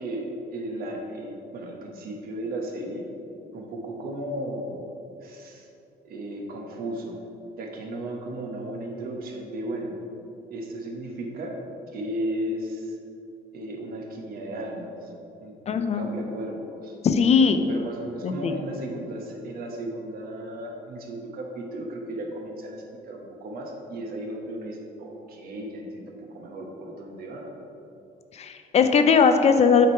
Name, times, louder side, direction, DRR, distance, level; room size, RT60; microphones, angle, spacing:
voice 1, 0.0-3.1 3.5-4.9 5.2-5.7 6.0-7.2 7.6-10.0 10.5-11.6 11.9-13.0 13.5-15.1 15.4-17.0 17.7-27.5, right 1 dB, 60° right, 1 dB, 1.1 m, -35 dB
voice 2, 15.7-16.1 17.0-17.6 18.2-18.5 28.3-29.9, left 6 dB, 40° left, 8 dB, 0.4 m, -19 dB
8.2 x 3.3 x 4.4 m, 2.8 s
cardioid pair, 110°, 17 cm